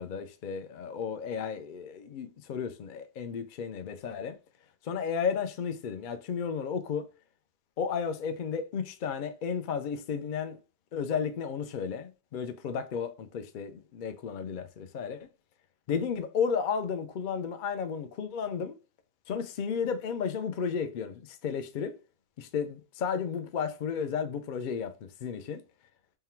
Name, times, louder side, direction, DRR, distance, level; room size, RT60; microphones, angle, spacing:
voice 1, 0.0-4.3 4.8-7.0 7.8-10.6 10.9-15.3 15.9-18.7 19.3-21.9 22.4-24.9 25.2-25.6, left 6 dB, 65° left, 0.5 m, -33 dB
3.7 x 2.2 x 4.2 m
omnidirectional pair, 1.3 m